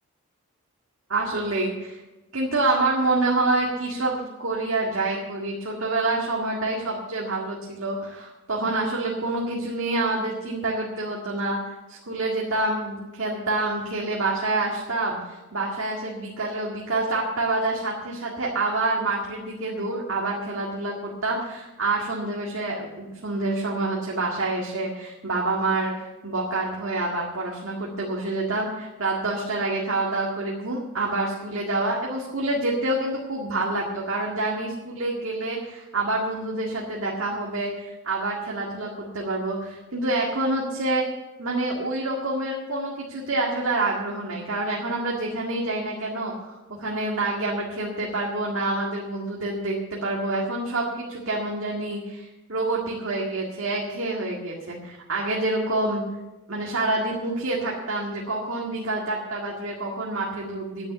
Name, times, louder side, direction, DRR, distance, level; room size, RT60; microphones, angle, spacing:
voice 1, 1.1-2.0 2.3-41.0 41.4-56.1 56.5-60.9, right 2 dB, 65° right, -2 dB, 2.0 m, -27 dB
10.5 x 9.2 x 8.1 m, 1.1 s
head